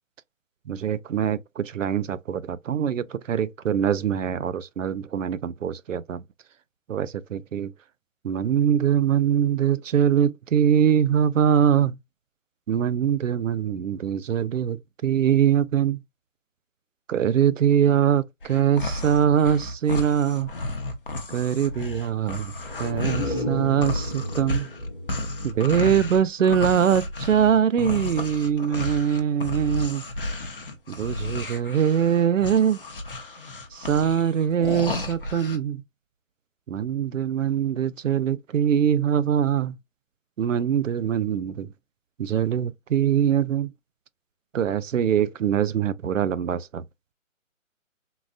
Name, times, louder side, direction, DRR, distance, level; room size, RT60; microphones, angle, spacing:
voice 1, 0.7-6.2 6.9-7.7 8.2-12.0 12.7-16.0 17.1-20.5 21.3-22.5 22.8-24.7 25.4-30.0 30.9-32.8 33.7-35.8 36.7-39.8 40.4-41.7 42.2-43.7 44.5-46.9, right 8 dB, 70° right, 0.5 m, -23 dB
sound 1, 18.4-23.4 23.8-35.6, left 2 dB, 45° left, 0.7 m, -32 dB
sound 2, 22.5-26.3 26.6-26.7, left 2 dB, 5° right, 0.9 m, -34 dB
3.8 x 2.5 x 2.4 m
hypercardioid pair, 180°, 40 cm